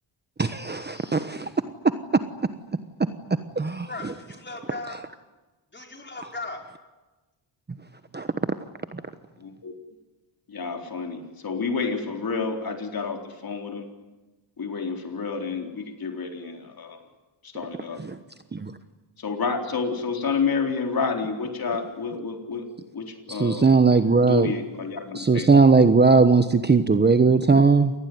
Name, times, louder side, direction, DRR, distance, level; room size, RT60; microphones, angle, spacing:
voice 1, 0.4-1.5 2.1-2.2 3.6-3.9 8.1-8.3 18.0-18.2 18.5-18.7 23.3-24.5 25.1-27.9, right 4 dB, 20° right, 10 dB, 1.1 m, -18 dB
voice 2, 3.9-5.0 5.7-6.7, left 3 dB, 20° left, 2 dB, 5.1 m, -37 dB
voice 3, 9.4-9.7 10.5-13.9 14.6-17.0 17.4-18.0 19.2-22.7 22.9-23.7 24.3-25.5, left 5 dB, 45° left, 3 dB, 4.1 m, -29 dB
27.5 x 20.0 x 9.4 m, 1.2 s
cardioid pair, 110°, 47 cm